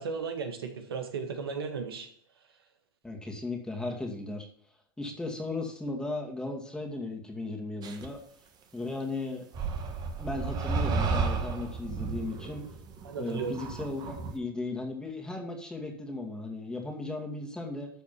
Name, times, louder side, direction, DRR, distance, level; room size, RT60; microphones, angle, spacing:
voice 1, 0.0-2.1 13.0-13.6, right 5 dB, 80° right, 5 dB, 1.6 m, -35 dB
voice 2, 3.0-4.5 5.0-8.2 8.7-9.5 10.2-12.6 13.2-17.9, left 2 dB, 5° left, 1 dB, 2.2 m, -36 dB
sound 1, 7.8-8.1 9.5-14.4, right 4 dB, 35° right, 1.5 m, -32 dB
12.5 x 4.2 x 5.6 m, 0.62 s
hypercardioid pair, 100°, 12 cm